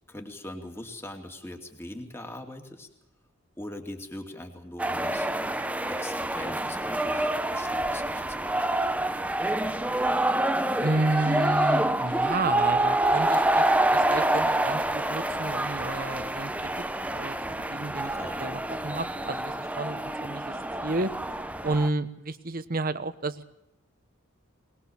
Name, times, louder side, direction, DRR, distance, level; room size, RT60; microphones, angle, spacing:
voice 1, 0.1-2.9 3.6-5.3 5.9-8.6 18.0-18.5, left 1 dB, 10° left, 3 dB, 2.6 m, -41 dB
sound 1, 4.8-21.9, right 1 dB, 5° right, 0.8 m, -27 dB
voice 2, 10.8-16.7 17.1-17.4 17.7-18.1 18.4-20.5 20.8-21.1 21.6-23.5, right 2 dB, 45° right, 13 dB, 1.1 m, -31 dB
21.5 x 21.0 x 7.2 m, 0.87 s
head